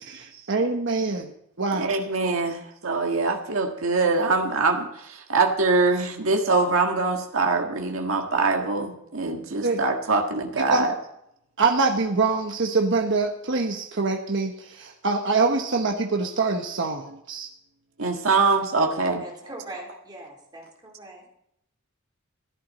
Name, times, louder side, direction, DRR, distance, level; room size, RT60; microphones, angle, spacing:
voice 1, 0.1-1.3 1.6-1.9 9.6-9.8 10.7-10.9 11.6-17.5, right 3 dB, 60° right, 2 dB, 1.2 m, -24 dB
voice 2, 1.7-10.9 18.0-19.2, right 3 dB, 85° right, 2 dB, 1.6 m, -23 dB
voice 3, 19.2-21.2, right 2 dB, 20° right, -1 dB, 3.7 m, -41 dB
15.0 x 11.5 x 4.2 m, 0.76 s
head